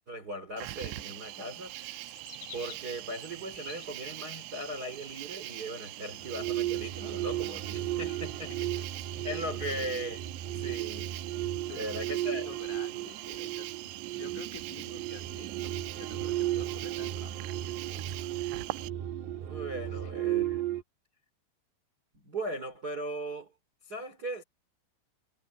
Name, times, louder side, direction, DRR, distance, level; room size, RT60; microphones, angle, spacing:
voice 1, 0.1-2.1 2.5-8.5 9.2-10.2 10.5-11.1 11.7-12.5 19.4-20.6 22.1-23.5 23.8-24.4, right 1 dB, 25° right, 2.9 m, -38 dB
Cricket, 0.6-18.9, right 18 dB, 85° right, 2.9 m, -42 dB
sound 1, 1.6-9.8, left 4 dB, 40° left, 1.3 m, -54 dB
sound 2, 6.1-20.8, right 13 dB, 65° right, 3.6 m, -35 dB
voice 2, 8.0-8.9 9.3-9.7 11.7-13.7 14.1-18.2 19.8-20.1, left 11 dB, 75° left, 4.7 m, -50 dB
omnidirectional pair, 5.6 m